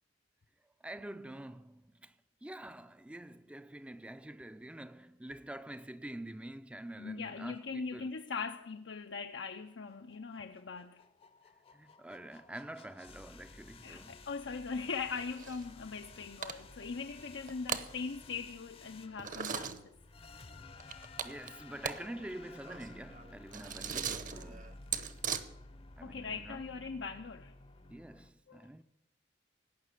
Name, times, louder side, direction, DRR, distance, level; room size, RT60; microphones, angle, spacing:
voice 1, 0.8-2.1 2.4-8.1 11.7-14.2 21.2-24.8 26.0-26.6 27.9-28.8, right 1 dB, 5° right, 0.4 m, -46 dB
voice 2, 7.0-11.0 13.8-19.9 26.0-27.5 28.5-28.7, left 5 dB, 85° left, 0.6 m, -41 dB
sound 1, 9.4-28.3, left 3 dB, 30° left, 0.6 m, -54 dB
sound 2, 15.2-15.6 16.0-16.1 16.4-16.8 17.3-17.9 19.2-19.8 20.8-22.0 22.3-22.4 22.6-25.4, right 7 dB, 45° right, 0.9 m, -38 dB
17.5 x 5.8 x 9.9 m
head